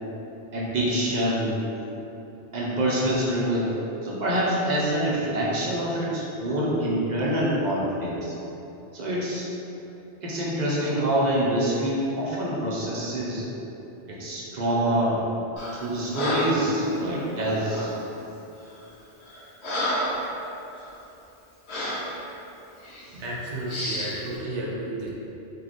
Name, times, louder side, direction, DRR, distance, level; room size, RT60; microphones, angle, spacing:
voice 1, 0.5-1.6 2.5-8.3 8.9-9.5 10.2-13.4 14.1-15.2 15.8-17.9, right 1 dB, 45° right, -5 dB, 0.7 m, -26 dB
Breathing, 15.6-15.8 16.1-16.7 17.7-18.0 18.6-18.8 19.2-20.3 20.7-20.9 21.7-22.1 22.8-23.0 23.7-24.2, equal, 70° left, 1.1 m, -30 dB
voice 2, 23.1-25.1, right 1 dB, 80° right, -4 dB, 1.0 m, -32 dB
3.1 x 2.7 x 4.0 m, 3.0 s
omnidirectional pair, 1.2 m